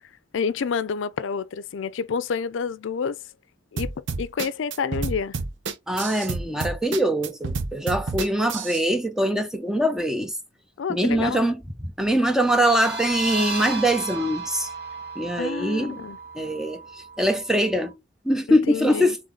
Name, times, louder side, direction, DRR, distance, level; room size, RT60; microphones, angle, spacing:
voice 1, 0.3-3.2 3.7-5.4 10.8-11.4 15.4-16.2 18.5-19.2, left 6 dB, 85° left, 0.4 m, -28 dB
sound 1, 3.8-8.8, right 4 dB, 75° right, 0.8 m, -29 dB
voice 2, 5.9-10.3 10.9-14.7 15.2-16.0 16.3-17.9 18.2-19.2, equal, 5° right, 0.6 m, -23 dB
sound 2, 12.4-17.9, right 4 dB, 55° right, 1.7 m, -34 dB
3.8 x 3.5 x 3.7 m
head